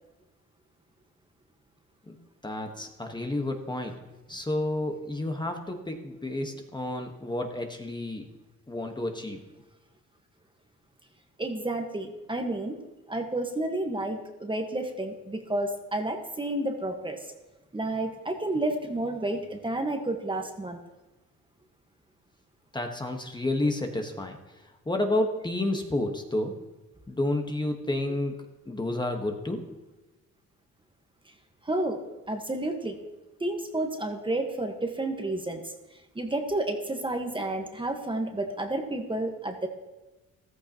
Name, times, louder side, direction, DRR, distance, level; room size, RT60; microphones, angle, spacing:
voice 1, 2.4-4.0 4.3-8.3 8.7-9.4 22.7-26.6 27.1-28.3 28.6-29.6, left 1 dB, 15° left, 3 dB, 1.4 m, -30 dB
voice 2, 11.4-12.8 13.1-17.2 17.7-20.8 31.6-32.0 32.3-33.0 33.4-35.6 36.1-39.7, right 1 dB, 15° right, 4 dB, 1.4 m, -30 dB
14.0 x 14.0 x 3.0 m, 1.1 s
cardioid pair, 90°, 30 cm